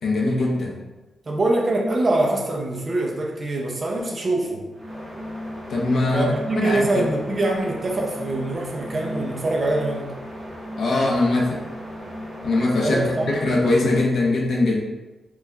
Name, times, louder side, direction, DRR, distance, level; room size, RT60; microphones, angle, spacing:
voice 1, 0.0-0.7 5.7-6.3 6.6-7.0 10.8-11.6 12.4-13.0 13.4-14.8, left 2 dB, 60° left, -2 dB, 0.8 m, -21 dB
voice 2, 1.3-4.7 6.1-10.1 12.8-13.4, right 2 dB, 30° right, -1 dB, 0.6 m, -24 dB
sound 1, 4.7-14.0, equal, 10° right, 1.2 m, -35 dB
4.6 x 2.4 x 3.4 m, 1.1 s
wide cardioid pair, 175°, 0 cm